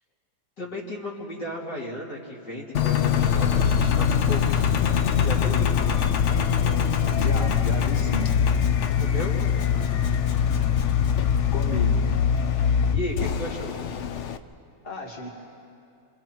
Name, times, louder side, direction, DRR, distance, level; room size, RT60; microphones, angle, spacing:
voice 1, 0.6-4.6 5.2-5.6 8.9-9.4 12.9-13.7, left 1 dB, 60° left, -5 dB, 3.5 m, -34 dB
Engine, 2.7-14.4, left 7 dB, 80° left, 0.6 m, -23 dB
voice 2, 7.1-8.3 11.5-12.1 14.8-15.3, left 1 dB, 20° left, -4 dB, 2.7 m, -33 dB
27.0 x 25.5 x 4.6 m, 2.6 s
omnidirectional pair, 2.1 m